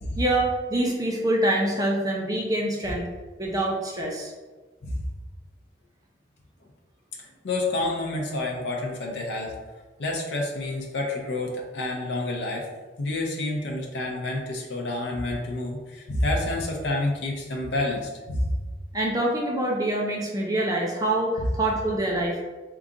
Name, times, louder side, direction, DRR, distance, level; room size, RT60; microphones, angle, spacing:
voice 1, 0.2-3.0 3.4-4.3 18.9-22.4, right 1 dB, 20° right, -2 dB, 0.4 m, -25 dB
voice 2, 7.2-9.5 10.0-12.7 13.0-18.5 21.4-21.5, left 2 dB, 80° left, -1 dB, 0.5 m, -29 dB
3.7 x 2.4 x 3.8 m, 1.3 s
head